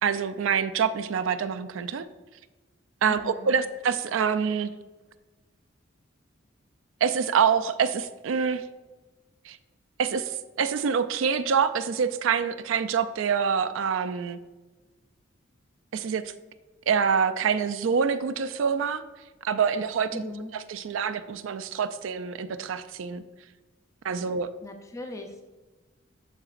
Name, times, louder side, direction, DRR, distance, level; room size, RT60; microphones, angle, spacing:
voice 1, 0.0-2.1 3.0-4.7 7.0-8.6 9.5-9.6 10.0-10.3 10.6-14.4 15.9-16.3 16.9-19.0 19.4-23.2 24.0-24.5, right 6 dB, 75° right, 12 dB, 0.4 m, -26 dB
voice 2, 3.1-3.6 20.1-20.5 24.6-25.4, left 2 dB, 15° left, 4 dB, 0.4 m, -39 dB
9.7 x 3.9 x 2.5 m, 1.2 s
head